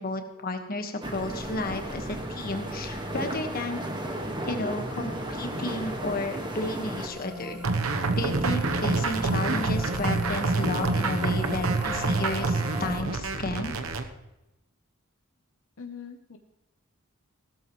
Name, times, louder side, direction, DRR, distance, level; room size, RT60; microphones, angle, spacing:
voice 1, 0.0-3.8 4.5-7.6 8.2-13.7, left 2 dB, 45° left, 5 dB, 1.5 m, -32 dB
sound 1, 1.0-7.1, right 1 dB, 20° right, 1.6 m, -34 dB
sound 2, 4.5-13.0, left 2 dB, 5° right, 1.0 m, -38 dB
sound 3, 7.6-14.0, right 3 dB, 85° right, 1.0 m, -27 dB
voice 2, 15.8-16.4, left 6 dB, 75° left, 5 dB, 0.9 m, -43 dB
16.5 x 13.0 x 3.2 m, 0.97 s
head